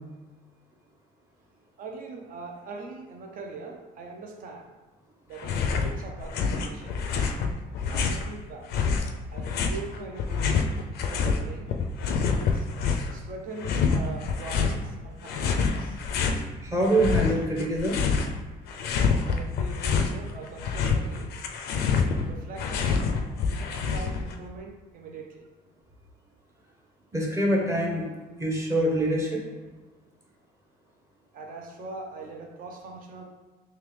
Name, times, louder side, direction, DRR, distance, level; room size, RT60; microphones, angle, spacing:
voice 1, 1.8-4.7 5.3-7.0 7.9-8.7 9.3-10.7 11.0-11.7 12.3-12.7 13.1-16.0 19.3-21.3 22.3-23.1 23.5-25.5 31.3-33.2, right 3 dB, 55° right, 1 dB, 0.7 m, -41 dB
sound 1, 5.4-5.9 6.2-8.3 8.7-11.4 11.7-13.2 13.6-14.8 15.2-16.4 16.8-18.4 18.7-20.2 20.5-24.3, left 5 dB, 70° left, 0.4 m, -26 dB
voice 2, 16.6-18.0 27.1-28.1 28.4-29.4, right 1 dB, 15° right, -2 dB, 0.8 m, -25 dB
3.6 x 2.9 x 3.3 m, 1.3 s
cardioid pair, 110°, 17 cm